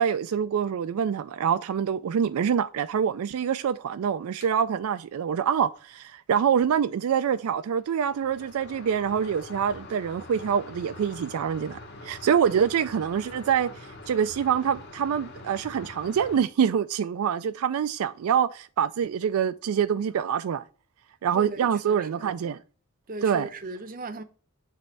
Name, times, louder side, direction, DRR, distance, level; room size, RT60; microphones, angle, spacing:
voice 1, 0.0-20.6 21.2-22.6 23.2-23.5, right 8 dB, 75° right, 0.3 m, -25 dB
sound 1, 4.4-4.5 7.3-7.4 7.7-16.4, left 2 dB, 50° left, 1.1 m, -44 dB
voice 2, 21.3-22.3 23.1-24.2, right 3 dB, 40° right, 0.7 m, -38 dB
6.8 x 3.2 x 4.5 m
head